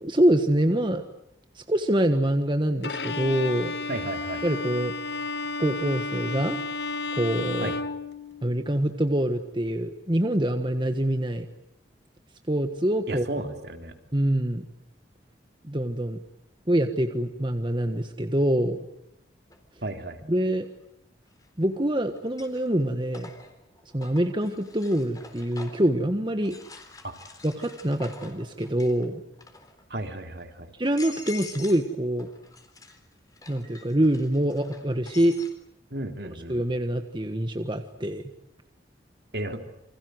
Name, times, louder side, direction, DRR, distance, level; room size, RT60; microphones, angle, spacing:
voice 1, 0.0-1.0 1.5-3.7 4.4-4.9 5.6-6.6 7.1-7.7 8.4-11.5 12.5-13.2 14.1-14.6 15.6-16.2 16.7-18.8 20.3-20.7 21.6-23.3 23.9-26.6 27.4-29.2 30.8-32.3 33.5-35.4 36.5-38.2, right 1 dB, 25° right, 6 dB, 1.4 m, -25 dB
Bowed string instrument, 2.8-8.7, left 3 dB, 65° left, 1.6 m, -32 dB
voice 2, 3.9-4.4 7.6-7.8 13.1-13.9 19.8-20.2 27.0-27.1 29.9-30.7 35.9-36.6 39.3-39.6, right 1 dB, 60° right, 5 dB, 3.4 m, -33 dB
sound 1, 19.5-19.6 21.3-21.8 22.2-25.9 26.4-29.0 29.3-29.8 30.4-30.5 30.8-31.9 32.2-35.5, left 3 dB, 20° left, 3.9 m, -46 dB
29.0 x 25.5 x 8.0 m, 0.81 s
head